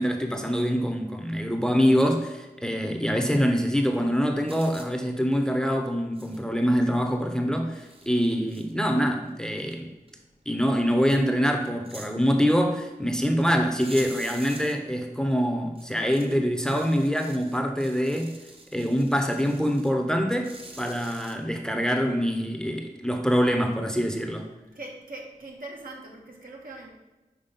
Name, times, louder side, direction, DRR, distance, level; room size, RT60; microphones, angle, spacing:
voice 1, 0.0-9.9 10.5-18.4 18.7-24.5, equal, 5° left, 4 dB, 0.7 m, -25 dB
sound 1, 4.5-4.9 6.2-6.4 7.1-7.2 7.7-8.1 8.5-9.3 9.6-9.7 10.1-10.2 11.5-12.1 13.4-13.5 13.8-14.7 15.8-16.4 16.7-19.9 20.4-21.4, right 2 dB, 40° right, 0.9 m, -46 dB
voice 2, 24.7-26.9, right 2 dB, 80° right, -2 dB, 1.7 m, -41 dB
5.7 x 4.7 x 5.3 m, 1.1 s
wide cardioid pair, 70°, 15 cm